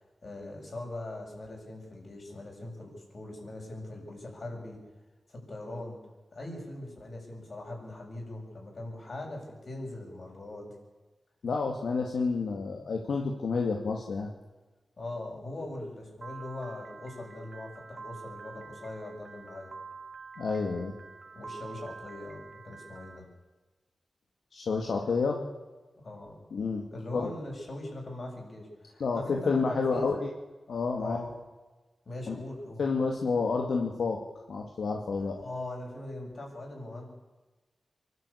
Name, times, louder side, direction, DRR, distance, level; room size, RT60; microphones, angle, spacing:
voice 1, 0.2-4.8 5.3-6.0 6.3-10.7 15.0-19.7 21.4-23.3 26.0-26.4 26.9-30.1 31.0-31.3 32.1-32.8 35.2-37.1, left 1 dB, 55° left, 1 dB, 7.3 m, -41 dB
voice 2, 11.4-14.3 20.4-20.9 24.5-25.4 26.5-26.8 27.1-27.2 29.0-30.3 30.7-31.2 32.3-32.4 32.8-34.2 34.5-35.3, left 4 dB, 85° left, 1 dB, 2.2 m, -29 dB
Piano, 16.2-23.2, right 4 dB, 55° right, 2.2 m, -47 dB
24.5 x 12.5 x 8.5 m, 1.2 s
cardioid pair, 60°, 0 cm